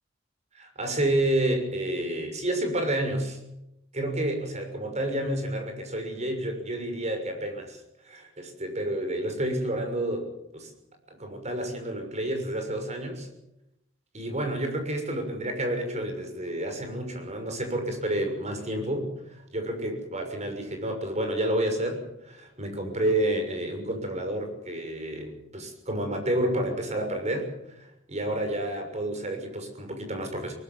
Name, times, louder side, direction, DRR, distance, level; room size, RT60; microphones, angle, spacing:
voice 1, 0.5-3.4 3.9-7.8 8.0-10.3 10.5-10.7 11.1-13.3 14.1-30.5, right 1 dB, 35° right, 5 dB, 6.6 m, -30 dB
23.5 x 20.5 x 7.4 m, 0.83 s
head